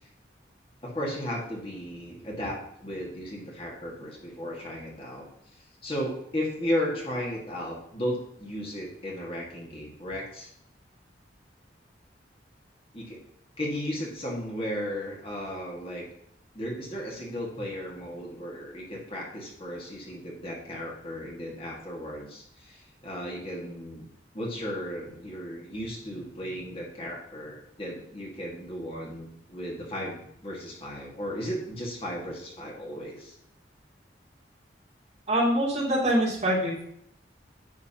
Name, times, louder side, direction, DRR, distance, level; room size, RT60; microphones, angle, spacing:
voice 1, 0.8-5.3 5.5-10.5 12.9-13.2 13.6-16.1 16.5-24.1 24.3-33.4, equal, 30° left, -2 dB, 1.9 m, -35 dB
voice 2, 35.3-36.8, right 1 dB, 40° right, -5 dB, 2.9 m, -24 dB
9.9 x 7.9 x 2.9 m, 0.72 s
head